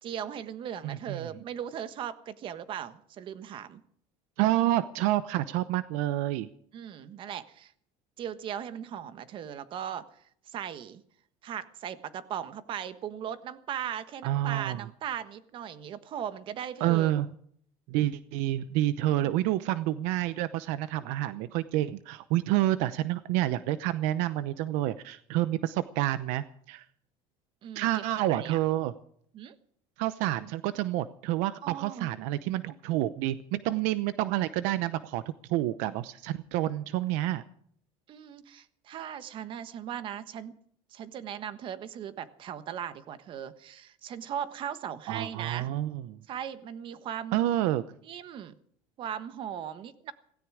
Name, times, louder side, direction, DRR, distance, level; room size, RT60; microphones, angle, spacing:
voice 1, 0.0-3.8 6.7-7.7 8.2-10.1 10.5-11.0 11.4-17.1 27.6-28.6 29.3-29.5 31.6-32.1 38.1-40.6 40.9-45.7 46.3-47.4 48.0-48.5 49.0-50.1, right 9 dB, 45° right, 12 dB, 1.3 m, -38 dB
voice 2, 0.8-1.3 4.4-6.5 14.2-14.8 16.8-17.3 17.9-26.8 27.7-28.9 30.0-37.4 45.1-46.2 47.3-47.8, right 14 dB, 75° right, 14 dB, 0.8 m, -28 dB
17.0 x 17.0 x 4.9 m, 0.63 s
cardioid pair, 145°, 12 cm